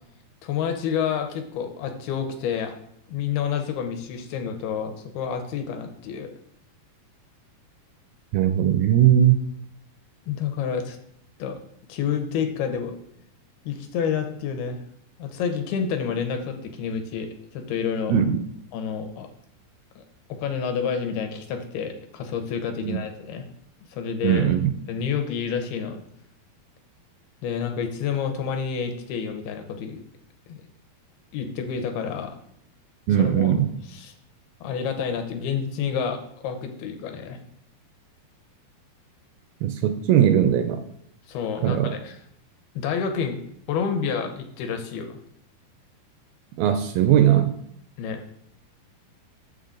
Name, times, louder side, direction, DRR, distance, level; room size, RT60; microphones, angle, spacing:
voice 1, 0.4-2.7 3.1-6.3 10.3-11.0 11.4-11.6 11.9-13.0 13.7-14.8 15.2-18.2 18.7-19.3 20.0-20.1 20.3-23.5 23.9-24.5 24.9-26.0 27.4-30.0 30.5-30.6 31.3-32.4 33.1-33.5 33.9-34.1 34.6-37.4 41.3-42.2 42.8-43.4 43.7-45.2 48.0-48.2, left 7 dB, 80° left, 5 dB, 2.7 m, -29 dB
voice 2, 8.3-9.4 18.1-18.4 22.8-23.0 24.2-24.7 33.1-33.7 39.6-40.8 41.6-41.9 46.6-47.5, right 10 dB, 80° right, 8 dB, 2.2 m, -19 dB
7.0 x 6.6 x 3.8 m, 0.72 s
omnidirectional pair, 4.5 m